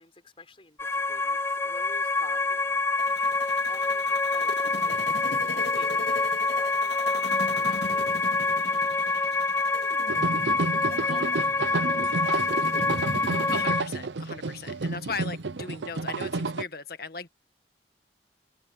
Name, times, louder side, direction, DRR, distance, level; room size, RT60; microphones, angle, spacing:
voice 1, 0.0-3.4 3.7-9.5 10.9-12.6, left 3 dB, 30° left, 5.9 m, -49 dB
sound 1, 0.8-13.8, left 3 dB, 15° left, 0.4 m, -26 dB
sound 2, 3.0-13.6, left 2 dB, 70° left, 2.2 m, -40 dB
sound 3, 10.1-16.6, right 3 dB, 75° right, 0.7 m, -31 dB
voice 2, 13.5-17.3, left 4 dB, 55° left, 1.7 m, -37 dB
open air
head